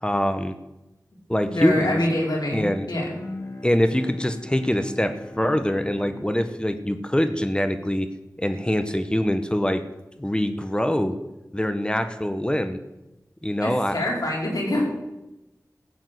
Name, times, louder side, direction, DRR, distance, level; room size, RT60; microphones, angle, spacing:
voice 1, 0.0-0.5 1.3-2.0 2.5-2.9 3.6-8.1 8.4-9.8 10.2-11.2 11.5-12.8 13.4-14.1, equal, 15° left, 9 dB, 1.3 m, -24 dB
voice 2, 1.5-3.1 13.6-14.8, left 1 dB, 85° left, -3 dB, 5.0 m, -25 dB
Bowed string instrument, 3.1-8.5, left 2 dB, 50° left, 2.7 m, -42 dB
15.0 x 8.9 x 8.3 m, 0.98 s
wide cardioid pair, 50°, 6 cm